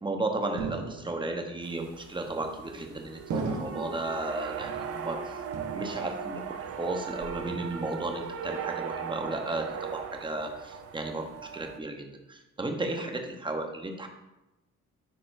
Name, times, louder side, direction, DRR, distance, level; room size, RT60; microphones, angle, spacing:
voice 1, 0.0-5.4 5.7-6.4 6.8-14.1, right 2 dB, 15° right, 4 dB, 0.9 m, -34 dB
sound 1, 0.6-1.4 2.3-2.8 3.3-4.1 4.6-5.2 5.5-6.3 6.6-7.0 7.5-8.1, right 4 dB, 70° right, 1.1 m, -37 dB
sound 2, 1.6-11.8, right 7 dB, 50° right, 0.6 m, -38 dB
10.0 x 4.2 x 2.6 m, 0.99 s
cardioid pair, 90°, 30 cm